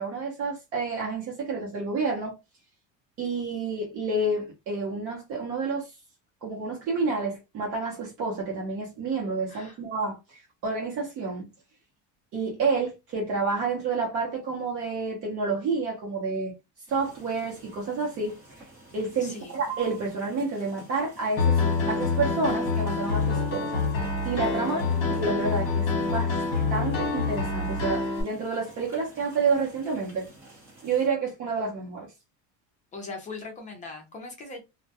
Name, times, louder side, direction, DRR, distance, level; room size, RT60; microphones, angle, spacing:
voice 1, 0.0-2.4 3.2-5.9 6.4-11.5 12.3-16.5 16.9-18.6 18.9-23.9 24.2-24.8 25.1-26.4 26.7-30.3 30.8-32.1, right 4 dB, 40° right, 0.7 m, -29 dB
sound 1, 16.9-31.1, right 4 dB, 10° right, 0.9 m, -49 dB
voice 2, 19.2-19.6 24.5-25.1 32.9-34.6, left 3 dB, 20° left, 0.6 m, -40 dB
Piano, 21.4-28.2, left 4 dB, 40° left, 1.1 m, -26 dB
2.2 x 2.1 x 2.6 m
cardioid pair, 155°, 34 cm